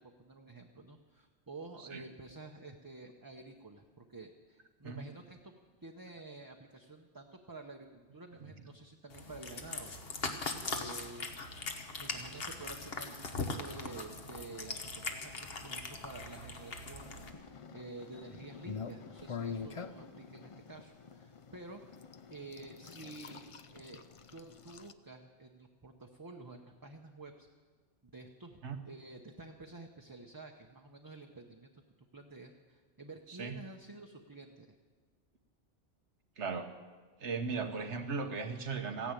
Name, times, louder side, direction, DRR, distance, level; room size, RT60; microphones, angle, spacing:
voice 1, 0.2-5.5 5.8-10.3 10.6-11.4 11.9-21.8 22.3-23.5 23.7-27.5 28.1-28.6 28.8-31.8 32.1-34.7, right 3 dB, 20° right, 2 dB, 0.8 m, -50 dB
Cat, 9.1-17.3, left 3 dB, 60° left, 1.5 m, -40 dB
sound 1, 17.0-24.9, left 6 dB, 45° left, 0.5 m, -46 dB
voice 2, 33.3-33.6 36.4-36.7 37.2-39.1, right 4 dB, 85° right, 6 dB, 1.5 m, -37 dB
15.5 x 10.0 x 9.0 m, 1.4 s
omnidirectional pair, 1.1 m